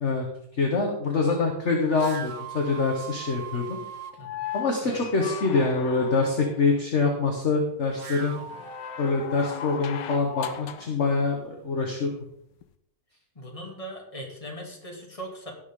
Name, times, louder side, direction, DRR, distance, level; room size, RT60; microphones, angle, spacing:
voice 1, 0.5-3.8 4.5-8.4 9.0-12.1, left 4 dB, 40° left, 1 dB, 1.6 m, -25 dB
sound 1, 1.9-4.2 7.7-9.4, right 7 dB, 50° right, 1.1 m, -40 dB
sound 2, 4.1-6.6 8.5-11.0 12.6-12.7, left 10 dB, 85° left, 1.5 m, -37 dB
voice 2, 4.2-4.5 4.8-5.0 8.3-8.6 13.3-15.5, right 1 dB, 20° left, 0 dB, 2.5 m, -40 dB
17.5 x 6.7 x 3.8 m, 0.75 s
omnidirectional pair, 1.9 m